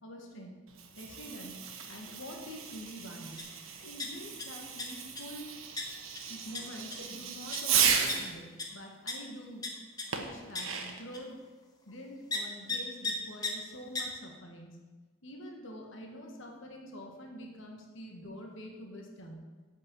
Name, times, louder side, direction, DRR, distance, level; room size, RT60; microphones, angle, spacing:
voice 1, 0.0-0.5 1.0-3.4 3.8-5.5 6.2-9.6 10.1-11.3 11.8-14.8 15.2-19.4, equal, 65° left, 1 dB, 1.6 m, -46 dB
Fireworks, 0.7-8.4 10.1-11.1, right 7 dB, 80° right, 1.1 m, -34 dB
sound 1, 3.4-3.5 3.8-4.4 4.8-5.2 5.8-5.9 6.1-6.2 6.5-6.6 6.9-7.1 7.5-7.6 8.1-8.2 8.6-8.7 9.1-9.2 9.6-9.7 10.0-10.1 10.5-10.6 11.1-11.2 12.3-12.4 12.7-12.8 13.0-13.1 13.4-13.5 13.9-14.0, left 4 dB, 20° left, 1.0 m, -34 dB
8.0 x 5.5 x 7.7 m, 1.3 s
head